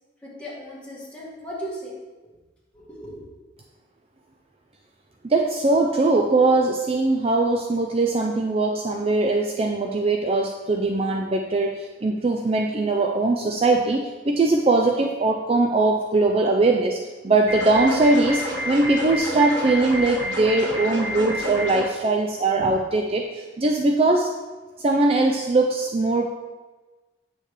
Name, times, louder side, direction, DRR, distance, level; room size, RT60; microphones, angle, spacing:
voice 1, 0.2-1.9 2.7-3.3, equal, 5° left, -7 dB, 2.1 m, -36 dB
voice 2, 5.2-17.0 17.2-24.3 24.8-26.3, right 2 dB, 30° right, 2 dB, 0.4 m, -21 dB
sound 1, 17.5-21.9, equal, 80° right, 1.3 m, -29 dB
8.7 x 6.5 x 3.3 m, 1.2 s
head